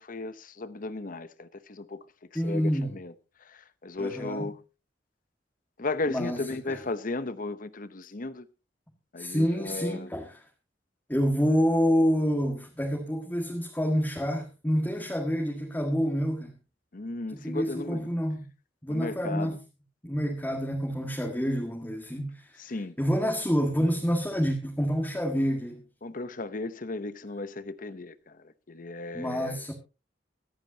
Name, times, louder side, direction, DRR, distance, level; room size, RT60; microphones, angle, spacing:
voice 1, 0.0-2.0 2.4-3.1 3.5-4.5 5.8-8.4 9.1-10.1 16.9-18.1 18.9-19.6 22.6-22.9 26.0-28.3 28.7-29.6, left 2 dB, 50° left, 0.8 m, -35 dB
voice 2, 2.3-3.0 4.0-4.5 6.1-6.8 9.2-10.4 11.1-16.5 17.3-18.5 18.8-19.6 20.0-25.8 29.1-29.7, equal, 10° left, 1.8 m, -28 dB
25.0 x 8.9 x 2.8 m
head